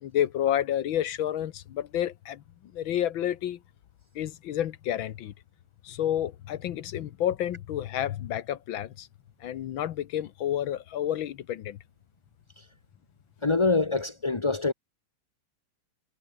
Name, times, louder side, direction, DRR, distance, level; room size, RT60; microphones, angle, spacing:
voice 1, 0.0-2.4 2.7-3.6 4.1-5.3 5.8-9.1 9.4-11.8, left 11 dB, 65° left, 1.6 m, -30 dB
voice 2, 13.4-14.7, left 3 dB, 30° left, 0.5 m, -25 dB
omnidirectional pair, 2.4 m